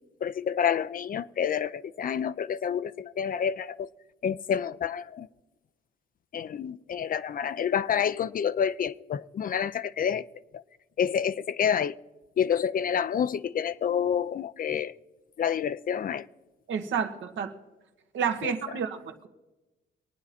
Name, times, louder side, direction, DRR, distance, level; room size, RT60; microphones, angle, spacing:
voice 1, 0.2-3.9 4.2-5.3 6.3-10.2 10.5-10.6 11.0-12.0 12.4-14.9 15.4-16.3 18.4-18.5, left 8 dB, 45° left, 0.5 m, -28 dB
voice 2, 16.7-17.5 18.1-19.3, right 7 dB, 70° right, 1.3 m, -30 dB
23.5 x 9.2 x 4.3 m
cardioid pair, 90°, 20 cm